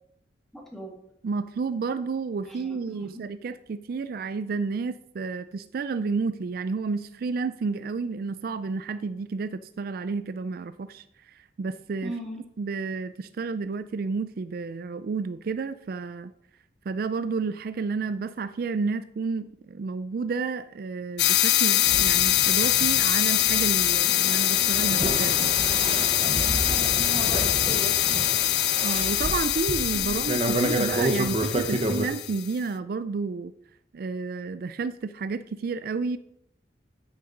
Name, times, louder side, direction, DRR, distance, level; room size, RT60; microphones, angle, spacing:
voice 1, 0.5-0.9 2.5-3.2 12.0-12.4 26.2-27.9 29.9-30.2, right 1 dB, ahead, 0 dB, 2.0 m, -38 dB
voice 2, 1.2-12.1 12.6-16.3 16.9-25.6 28.8-33.5 33.9-36.2, right 4 dB, 55° right, 13 dB, 0.4 m, -31 dB
sound 1, 21.2-32.5, left 14 dB, 65° left, 0.5 m, -24 dB
sound 2, 21.9-32.1, right 1 dB, 35° right, 1.1 m, -30 dB
8.6 x 6.7 x 5.2 m, 0.72 s
head